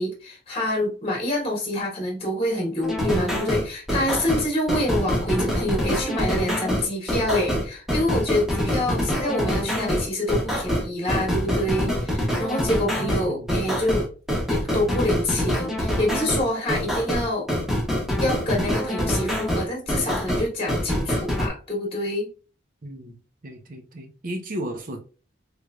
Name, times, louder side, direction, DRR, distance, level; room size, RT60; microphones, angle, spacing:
voice 1, 0.0-14.1 14.5-17.5 18.2-22.3, left 1 dB, 30° left, 1.2 m, -26 dB
sound 1, 2.8-21.5, equal, ahead, 1.0 m, -25 dB
voice 2, 8.8-9.1 13.0-13.8 22.8-23.2 23.4-25.0, right 1 dB, 50° right, 0.7 m, -35 dB
3.2 x 3.1 x 2.4 m
head